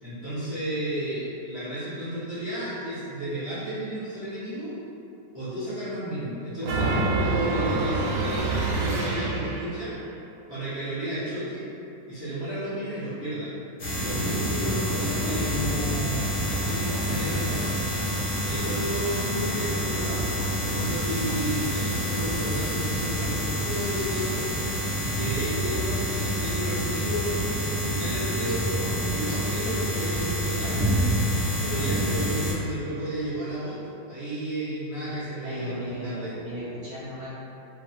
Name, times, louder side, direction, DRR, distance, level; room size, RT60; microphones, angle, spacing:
voice 1, 0.0-4.8 5.3-9.9 10.5-11.7 12.1-13.5 14.0-17.7 18.4-20.2 20.6-24.5 25.1-30.9 31.6-33.8 34.1-36.3, right 1 dB, 25° right, -14 dB, 0.3 m, -32 dB
sound 1, 6.6-9.8, right 2 dB, 85° right, 1.3 m, -26 dB
sound 2, 13.8-32.5, equal, 85° left, 0.4 m, -27 dB
voice 2, 35.4-37.3, right 1 dB, 70° right, -10 dB, 1.0 m, -36 dB
3.1 x 2.4 x 2.8 m, 2.7 s
omnidirectional pair, 1.9 m